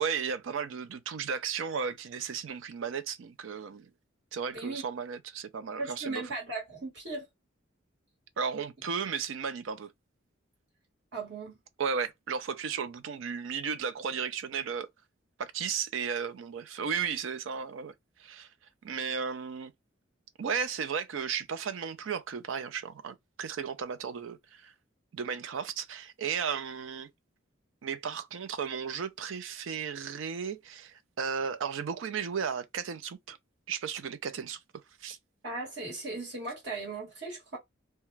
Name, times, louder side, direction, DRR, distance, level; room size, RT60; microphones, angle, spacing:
voice 1, 0.0-3.9 4.3-6.2 8.4-9.9 11.8-14.9 15.4-17.9 18.2-18.5 18.8-19.7 20.4-24.7 25.1-27.1 27.8-33.4 33.7-34.6 35.0-35.2, right 6 dB, 80° right, 0.4 m, -34 dB
voice 2, 4.5-4.8 5.8-7.3 11.1-11.6 35.4-37.6, right 3 dB, 60° right, 1.3 m, -37 dB
2.3 x 2.2 x 3.1 m
head